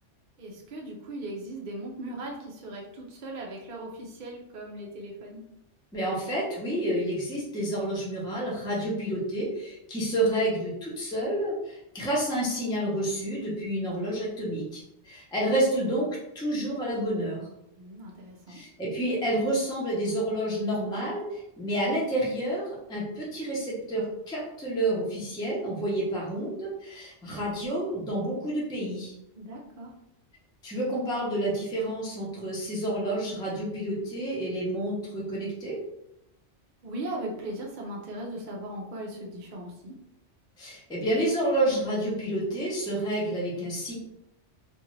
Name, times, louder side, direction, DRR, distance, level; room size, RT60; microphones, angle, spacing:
voice 1, 0.4-5.4 17.8-18.6 29.3-29.9 36.8-40.0, right 1 dB, 55° right, -2 dB, 0.6 m, -38 dB
voice 2, 5.9-17.5 18.5-22.6 22.9-29.1 30.6-35.8 40.6-43.9, right 1 dB, 5° left, -5 dB, 0.6 m, -29 dB
2.6 x 2.3 x 3.1 m, 0.84 s
omnidirectional pair, 1.2 m